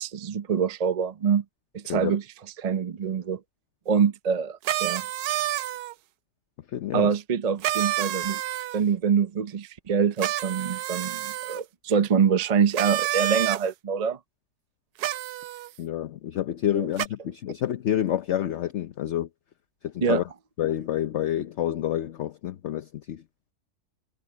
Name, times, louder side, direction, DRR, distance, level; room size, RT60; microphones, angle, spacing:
voice 1, 0.0-1.4 1.7-2.2 2.6-3.4 3.9-5.0 6.9-8.4 8.7-14.2 16.7-16.9 20.0-20.2, right 7 dB, 55° right, 0.4 m, -25 dB
sound 1, 4.6-5.9 7.6-8.8 10.2-11.6 12.7-13.6 15.0-15.7 17.0-17.1, right 13 dB, 75° right, 1.1 m, -28 dB
voice 2, 6.7-7.2 15.8-19.3 19.8-20.2 20.6-23.2, left 11 dB, 55° left, 0.8 m, -28 dB
omnidirectional pair, 1.7 m